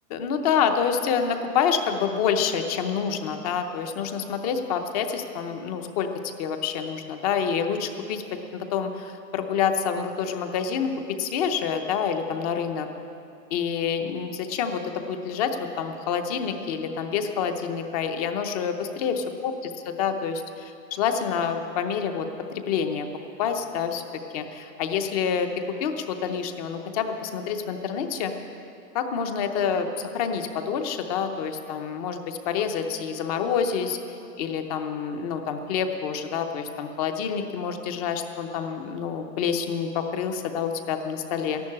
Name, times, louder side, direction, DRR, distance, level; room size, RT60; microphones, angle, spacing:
voice 1, 0.1-6.1 6.4-8.2 8.5-12.9 13.5-22.3 22.5-23.1 23.4-24.0 24.3-25.5 25.8-28.3 28.9-34.0 34.4-41.6, left 7 dB, 25° left, 7 dB, 0.7 m, -27 dB
13.5 x 11.5 x 8.5 m, 2.6 s
hypercardioid pair, 155°, 49 cm